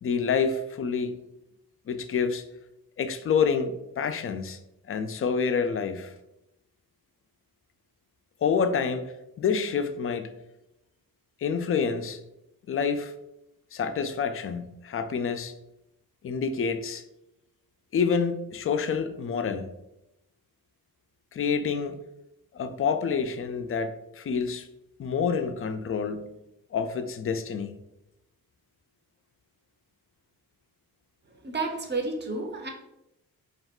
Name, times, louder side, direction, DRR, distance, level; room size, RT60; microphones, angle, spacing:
voice 1, 0.0-1.2 1.9-2.4 3.0-4.6 4.9-6.1 8.4-10.3 11.4-12.2 12.7-13.1 13.7-15.5 16.2-17.0 17.9-19.7 21.3-22.0 22.5-24.7 25.0-26.3 26.7-27.8, left 6 dB, 35° left, 0.4 m, -28 dB
voice 2, 31.4-32.7, right 3 dB, 30° right, 0.7 m, -31 dB
2.4 x 2.2 x 3.6 m
supercardioid pair, 45°, 38 cm